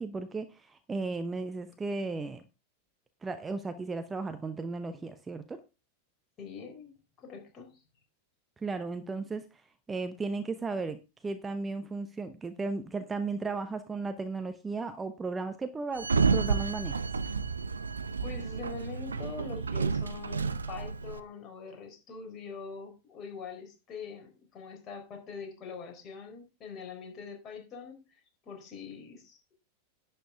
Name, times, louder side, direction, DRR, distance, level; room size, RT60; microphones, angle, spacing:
voice 1, 0.0-2.4 3.2-5.6 8.6-17.0, right 3 dB, 15° right, 9 dB, 0.8 m, -35 dB
voice 2, 6.4-6.9 7.2-7.8 18.2-29.5, left 5 dB, 30° left, 3 dB, 3.9 m, -44 dB
Sliding door, 16.0-21.2, right 5 dB, 75° right, 0.7 m, -30 dB
11.0 x 9.1 x 3.6 m, 0.28 s
figure-of-eight pair, 90°, 0 cm